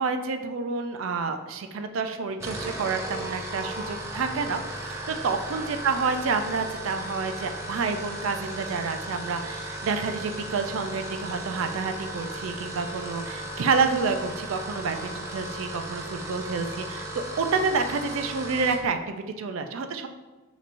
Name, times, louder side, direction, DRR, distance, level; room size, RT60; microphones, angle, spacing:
voice 1, 0.0-4.6 4.9-20.1, right 4 dB, 80° right, 7 dB, 0.4 m, -29 dB
sound 1, 2.3-18.8, right 1 dB, 15° right, 0.4 m, -36 dB
5.3 x 3.0 x 2.5 m, 1.2 s
head